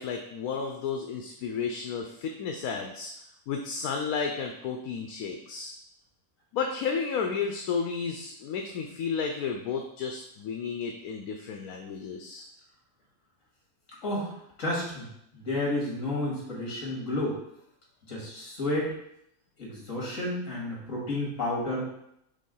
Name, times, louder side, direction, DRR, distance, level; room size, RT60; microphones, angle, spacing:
voice 1, 0.0-3.1 3.5-5.7 6.5-12.5, left 5 dB, 75° left, 3 dB, 1.1 m, -32 dB
voice 2, 14.0-15.1 15.3-17.4 18.1-18.9 19.6-21.9, left 1 dB, 60° left, -3 dB, 2.5 m, -31 dB
5.4 x 3.7 x 5.4 m, 0.77 s
omnidirectional pair, 1.6 m